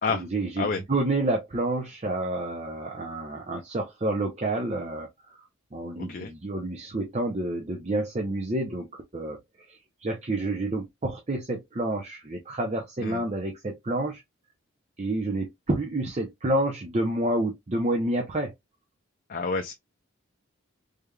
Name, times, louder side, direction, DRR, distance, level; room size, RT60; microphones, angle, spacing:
voice 1, 0.1-5.4 5.7-9.4 9.7-14.2 15.0-18.5, right 2 dB, 30° right, 0.6 m, -29 dB
voice 2, 6.0-6.3 13.0-13.2 19.3-19.7, left 4 dB, 40° left, 0.4 m, -29 dB
3.4 x 3.3 x 2.2 m
head